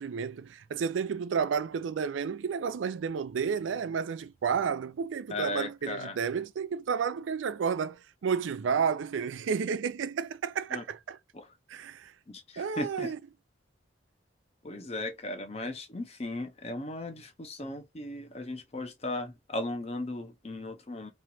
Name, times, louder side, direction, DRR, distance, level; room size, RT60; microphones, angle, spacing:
voice 1, 0.0-11.2 11.7-12.1 12.6-13.2, right 6 dB, 90° right, 0.4 m, -31 dB
voice 2, 5.3-6.2 10.7-10.8 11.3-11.9 12.3-13.1 14.6-21.1, left 2 dB, 35° left, 0.7 m, -37 dB
3.1 x 2.9 x 2.7 m
head